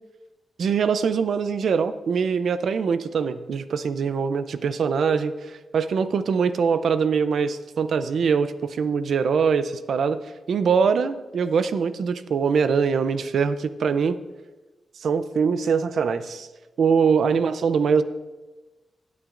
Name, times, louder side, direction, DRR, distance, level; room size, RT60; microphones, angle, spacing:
voice 1, 0.6-5.3 5.7-14.2 15.0-16.5 16.8-18.0, right 6 dB, 80° right, 12 dB, 0.5 m, -23 dB
16.5 x 9.3 x 2.5 m, 1.2 s
cardioid pair, 90°, 0 cm